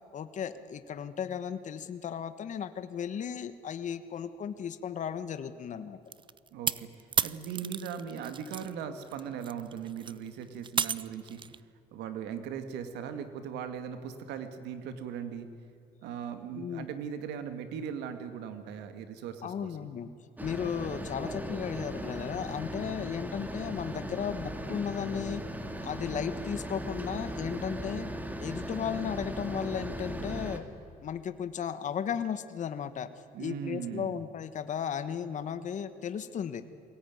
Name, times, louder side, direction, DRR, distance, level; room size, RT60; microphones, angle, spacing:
voice 1, 0.1-6.0 16.5-16.9 19.4-20.1 20.4-25.4 25.8-28.1 28.4-30.7 31.0-33.1 33.4-36.6, left 8 dB, 45° left, 11 dB, 1.3 m, -35 dB
sound 1, 6.1-8.7 9.0-11.6, right 6 dB, 30° right, 0.6 m, -33 dB
voice 2, 6.5-11.4 11.9-15.5 16.0-20.0 33.3-34.2, right 8 dB, 85° right, 9 dB, 2.1 m, -39 dB
sound 2, 20.4-30.6, right 1 dB, 10° right, 2.2 m, -38 dB
22.5 x 18.0 x 9.5 m, 2.6 s
cardioid pair, 110°, 17 cm